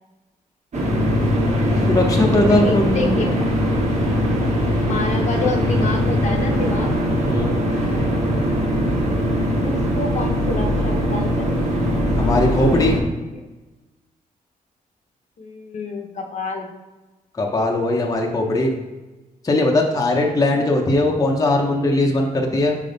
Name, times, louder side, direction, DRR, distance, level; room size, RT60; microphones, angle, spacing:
sound 1, 0.7-13.0, equal, 50° right, 1.4 m, -20 dB
voice 1, 1.9-3.2 7.3-7.5 12.2-13.0 17.4-18.7 19.4-22.8, left 2 dB, 25° left, 0 dB, 0.7 m, -19 dB
voice 2, 2.4-3.5 4.8-6.9 9.6-11.7 13.0-13.4 15.4-16.7, left 3 dB, 50° left, 2 dB, 0.8 m, -29 dB
5.2 x 4.7 x 3.9 m, 1.1 s
cardioid pair, 120°, 15 cm